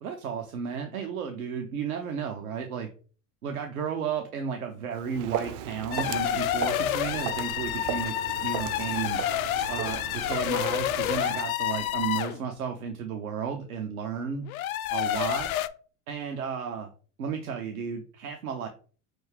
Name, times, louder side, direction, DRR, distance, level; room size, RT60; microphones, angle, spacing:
voice 1, 0.0-2.9 3.4-8.2 8.4-9.2 9.7-14.5 14.9-15.5 16.1-16.9 17.2-18.7, right 7 dB, 90° right, 5 dB, 0.6 m, -33 dB
Walk footsteps, 4.9-11.5, right 10 dB, 50° right, 0.5 m, -37 dB
sound 1, 5.9-12.4 14.5-15.7, left 12 dB, 80° left, 0.5 m, -29 dB
6.0 x 2.4 x 3.2 m, 0.40 s
hypercardioid pair, 80°, 42 cm